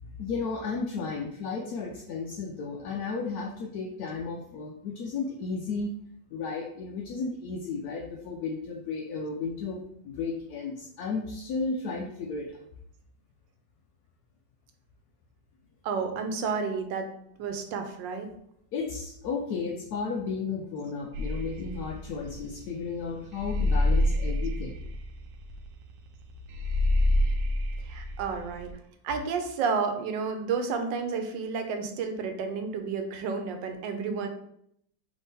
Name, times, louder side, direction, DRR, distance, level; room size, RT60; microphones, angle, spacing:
voice 1, 0.0-5.9 6.3-12.6 18.7-24.8, left 4 dB, 70° left, 0 dB, 1.0 m, -34 dB
voice 2, 15.8-17.0 17.4-18.3 27.9-28.7 29.0-34.3, right 5 dB, 90° right, 6 dB, 1.4 m, -31 dB
sound 1, 21.1-28.7, left 1 dB, 70° right, 1.0 m, -27 dB
3.6 x 3.4 x 4.0 m, 0.72 s
omnidirectional pair, 1.9 m